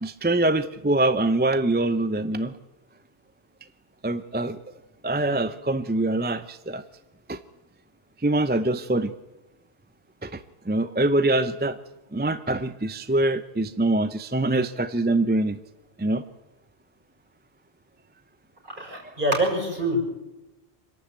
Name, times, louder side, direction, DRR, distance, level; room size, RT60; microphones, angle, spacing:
voice 1, 0.0-2.5 4.0-4.6 5.0-6.8 7.3-7.4 8.2-9.1 10.2-11.8 12.1-15.6 16.0-16.2, right 2 dB, 10° right, 12 dB, 0.5 m, -24 dB
voice 2, 18.7-20.0, right 1 dB, 50° right, 0 dB, 6.4 m, -25 dB
25.5 x 12.0 x 8.9 m, 1.1 s
omnidirectional pair, 1.1 m